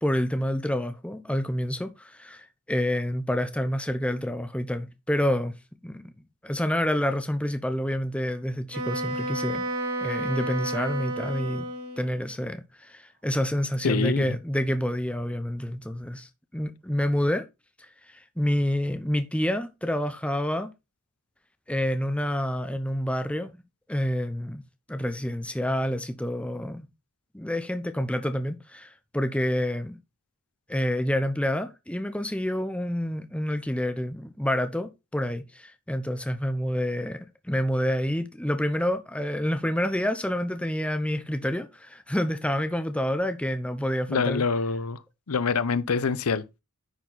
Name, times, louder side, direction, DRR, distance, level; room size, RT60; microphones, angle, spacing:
voice 1, 0.0-5.5 5.8-6.1 6.4-9.6 10.0-11.7 12.0-17.5 18.4-20.7 21.7-23.6 23.9-24.6 24.9-26.9 27.3-30.0 30.7-44.4, equal, 5° left, 0.8 m, -28 dB
Wind instrument woodwind instrument, 8.7-12.3, right 1 dB, 90° right, 4.6 m, -31 dB
voice 2, 13.8-14.4 44.1-45.0 45.3-46.6, left 5 dB, 85° left, 0.7 m, -26 dB
10.5 x 4.6 x 4.0 m
head